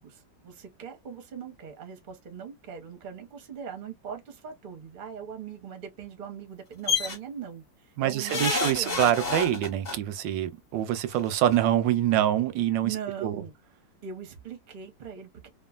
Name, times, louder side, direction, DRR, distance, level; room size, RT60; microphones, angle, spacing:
voice 1, 0.0-9.0 12.8-13.5 14.0-15.5, right 7 dB, 45° right, 0.6 m, -40 dB
sound 1, 6.9-7.2 8.3-10.0 11.1-11.2 11.5-11.6, left 5 dB, 50° left, 0.5 m, -28 dB
voice 2, 8.0-12.9 13.2-13.4, right 11 dB, 85° right, 1.3 m, -25 dB
3.0 x 2.4 x 2.3 m
omnidirectional pair, 1.9 m